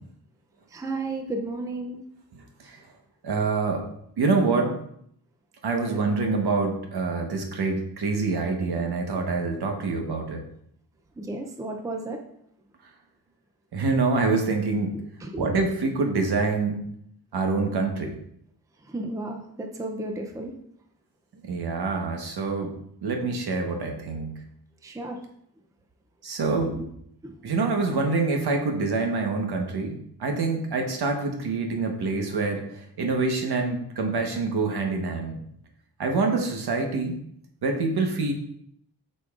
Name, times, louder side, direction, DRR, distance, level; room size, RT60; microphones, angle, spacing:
voice 1, 0.7-2.0 5.8-6.0 11.2-12.2 15.2-15.5 18.8-20.5 24.8-25.2 26.5-26.9 27.2-27.4, right 2 dB, 10° right, 2 dB, 0.5 m, -33 dB
voice 2, 3.2-3.9 4.2-4.8 5.6-10.4 13.7-15.0 15.4-16.8 17.3-18.2 21.5-22.8 23.0-24.4 26.2-26.8 27.4-35.4 36.0-37.2 37.6-38.3, right 3 dB, 70° right, 3 dB, 1.2 m, -26 dB
8.4 x 5.3 x 2.4 m, 0.72 s
wide cardioid pair, 175°, 40 cm